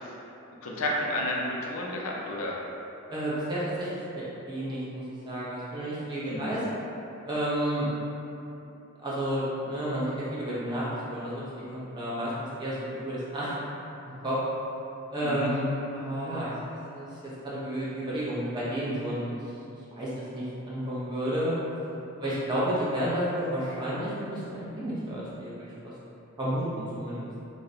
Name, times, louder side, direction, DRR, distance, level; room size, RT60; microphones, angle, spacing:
voice 1, 0.6-2.6 6.3-6.5 15.2-15.5, left 1 dB, 75° left, -2 dB, 0.4 m, -31 dB
voice 2, 3.1-3.9 4.1-6.6 7.2-7.9 9.0-12.3 12.6-13.6 14.0-14.4 15.1-16.5 16.9-19.3 20.0-21.5 22.2-25.9 26.4-27.3, equal, 20° right, -9 dB, 0.4 m, -31 dB
2.6 x 2.0 x 2.4 m, 2.8 s
head